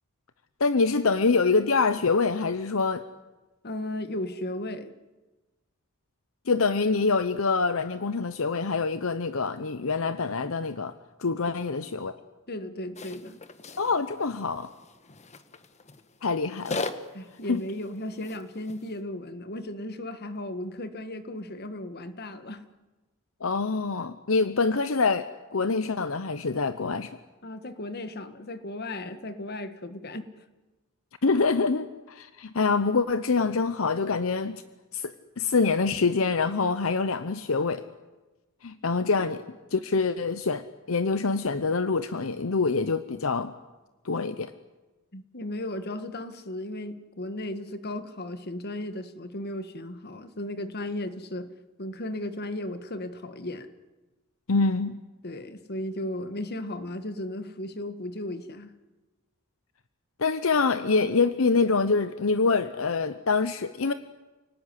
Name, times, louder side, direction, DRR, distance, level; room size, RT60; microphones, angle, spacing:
voice 1, 0.6-3.0 6.5-12.2 13.8-14.7 16.2-16.9 17.5-17.6 23.4-27.1 31.2-34.6 34.9-37.8 38.6-39.4 39.7-43.5 44.0-44.5 54.5-55.0 60.2-63.9, left 4 dB, 70° left, 12 dB, 0.8 m, -25 dB
voice 2, 3.6-4.9 11.5-11.6 12.5-13.4 17.1-22.6 27.4-30.2 45.1-51.5 51.8-53.7 55.2-58.7, left 1 dB, 50° left, 10 dB, 1.7 m, -35 dB
sound 1, 13.0-19.0, left 3 dB, 35° left, 1.3 m, -40 dB
29.0 x 18.5 x 9.9 m, 1.2 s
head